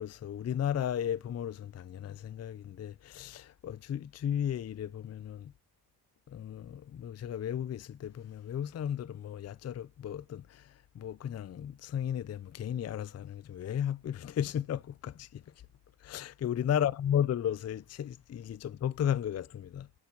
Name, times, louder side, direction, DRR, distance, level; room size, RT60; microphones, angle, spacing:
voice 1, 0.0-5.5 6.3-15.5 16.0-19.9, left 9 dB, 40° left, 0.4 m, -34 dB
7.1 x 3.9 x 3.9 m
cardioid pair, 45°, 40 cm